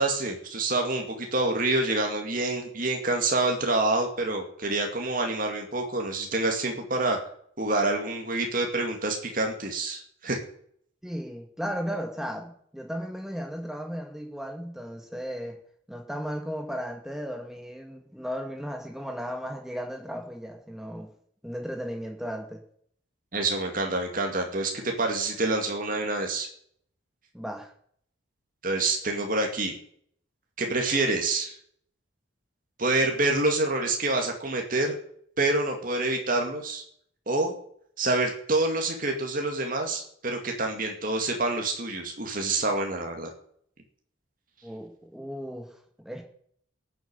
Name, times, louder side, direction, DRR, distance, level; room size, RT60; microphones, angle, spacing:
voice 1, 0.0-7.2 7.6-10.4 23.3-26.5 28.6-29.7 30.6-31.5 32.8-35.0 35.4-36.8 37.3-37.5 38.0-43.3, right 2 dB, 45° right, 3 dB, 2.3 m, -27 dB
voice 2, 11.0-15.6 15.9-21.1 21.4-22.6 27.3-27.7 44.6-46.2, equal, ahead, 4 dB, 2.0 m, -35 dB
14.0 x 7.9 x 9.0 m, 0.63 s
head